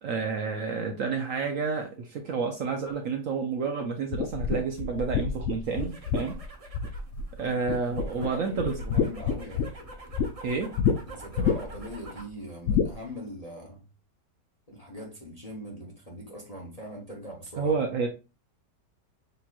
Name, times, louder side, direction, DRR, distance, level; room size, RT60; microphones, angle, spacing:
voice 1, 0.0-6.4 7.4-8.8 10.4-10.7 17.6-18.1, right 5 dB, 60° right, 0.9 m, -30 dB
sound 1, 4.1-7.4 7.7-8.3 8.6-10.3 10.8-11.0 11.4-11.9 12.7-12.9, left 6 dB, 80° left, 0.6 m, -27 dB
sound 2, 5.6-12.4 12.7-13.3, right 2 dB, 40° right, 0.5 m, -47 dB
voice 2, 7.9-9.7 11.1-13.9 14.7-17.7, equal, 30° left, 0.8 m, -41 dB
6.7 x 2.9 x 2.4 m
omnidirectional pair, 1.9 m